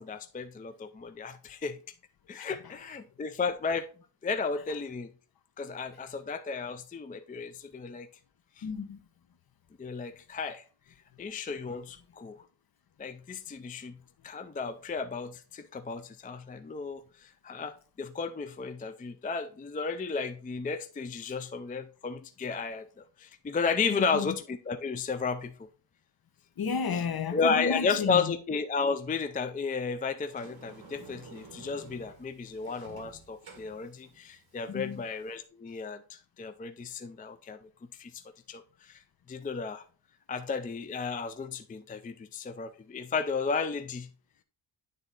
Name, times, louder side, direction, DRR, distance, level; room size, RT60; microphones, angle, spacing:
voice 1, 0.0-1.8 2.3-3.9 4.2-5.1 5.6-8.1 8.6-8.7 9.8-10.6 11.2-12.4 13.0-13.9 14.2-25.5 27.3-37.6 38.0-38.1 38.5-39.0 39.3-39.8 40.3-44.1, left 5 dB, 20° left, 0.4 m, -33 dB
voice 2, 8.6-9.0 21.2-21.3 23.9-24.3 26.6-28.3 34.7-35.1, left 6 dB, 50° left, 1.0 m, -32 dB
Sliding door, 30.3-35.5, right 4 dB, 50° right, 2.0 m, -52 dB
9.3 x 3.9 x 3.9 m
wide cardioid pair, 115°, 47 cm